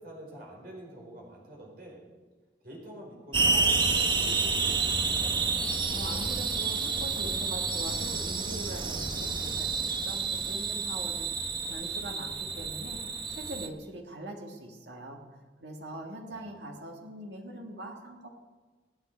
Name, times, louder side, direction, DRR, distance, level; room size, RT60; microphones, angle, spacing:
voice 1, 0.0-2.0 2.6-5.3 16.3-16.5, right 1 dB, 55° right, -1 dB, 4.3 m, -47 dB
sound 1, 3.3-13.7, right 4 dB, 25° right, 0.9 m, -29 dB
voice 2, 5.9-11.3 11.7-15.2 15.6-18.3, right 1 dB, 80° right, 2 dB, 1.9 m, -42 dB
24.5 x 9.3 x 4.5 m, 1.3 s
head